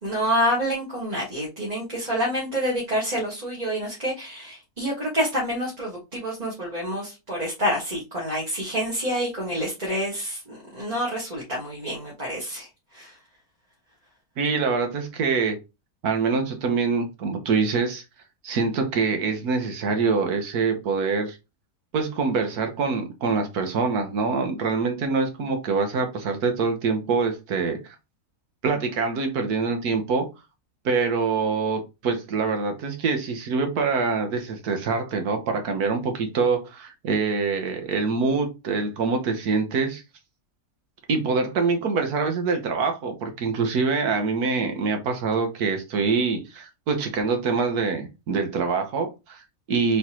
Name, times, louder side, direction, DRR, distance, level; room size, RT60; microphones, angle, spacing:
voice 1, 0.0-12.7 12.9-13.1, equal, 30° right, -5 dB, 1.8 m, -27 dB
voice 2, 14.4-15.6 16.0-18.0 18.4-21.4 21.9-27.9 28.6-30.2 30.8-40.0 41.1-50.0, right 4 dB, 90° right, 5 dB, 1.6 m, -25 dB
4.3 x 3.9 x 3.0 m, 0.25 s
omnidirectional pair, 1.6 m